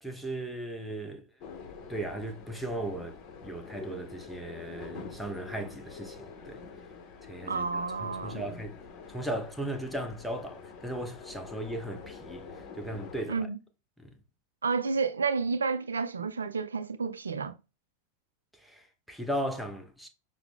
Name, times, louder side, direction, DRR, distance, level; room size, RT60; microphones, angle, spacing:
voice 1, 0.0-1.3 1.9-6.6 7.3-8.8 9.1-12.5 12.8-13.5 14.0-14.1 18.6-20.1, right 1 dB, ahead, 0.6 m, -37 dB
sound 1, 1.4-13.2, left 5 dB, 40° left, 0.7 m, -46 dB
voice 2, 7.5-8.4 13.3-13.6 14.6-17.5, right 5 dB, 70° right, 0.4 m, -30 dB
5.7 x 2.0 x 3.5 m
figure-of-eight pair, 90°, 0 cm